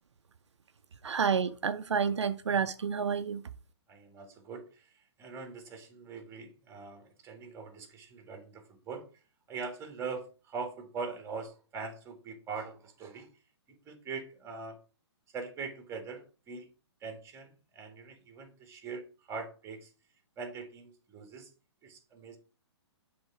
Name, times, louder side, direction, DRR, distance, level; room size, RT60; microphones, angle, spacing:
voice 1, 1.0-3.4, right 6 dB, 80° right, 0.5 m, -29 dB
voice 2, 3.9-9.1 9.5-13.3 13.7-14.8 15.3-16.7 17.0-19.9 20.4-21.5 21.8-22.4, right 4 dB, 20° right, 1.6 m, -42 dB
7.8 x 3.5 x 4.7 m
hypercardioid pair, 130°, 15 cm